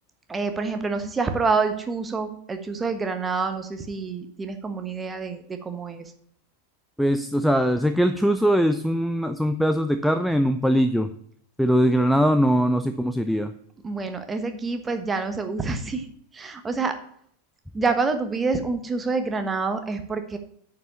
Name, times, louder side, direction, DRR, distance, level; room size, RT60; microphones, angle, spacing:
voice 1, 0.3-6.0 13.8-16.1 16.3-17.0 17.7-20.4, right 4 dB, 15° right, 7 dB, 1.2 m, -27 dB
voice 2, 7.0-11.1 11.6-13.5, equal, ahead, 10 dB, 0.5 m, -21 dB
9.1 x 5.4 x 7.1 m, 0.65 s
figure-of-eight pair, 90°, 0 cm